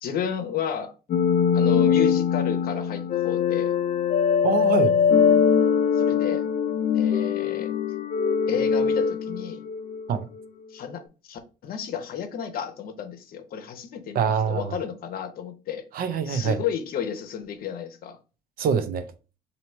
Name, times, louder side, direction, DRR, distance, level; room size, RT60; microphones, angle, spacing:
voice 1, 0.0-0.9 1.5-3.7 6.0-6.5 6.9-7.7 8.5-9.6 10.7-15.9 16.3-18.2, left 8 dB, 60° left, 0.8 m, -32 dB
sound 1, 1.1-10.1, left 7 dB, 45° left, 0.4 m, -22 dB
voice 2, 4.4-5.0 10.1-10.2 14.1-14.8 15.9-16.6 18.6-19.1, right 6 dB, 60° right, 0.6 m, -24 dB
2.9 x 2.8 x 4.3 m
cardioid pair, 110°, 17 cm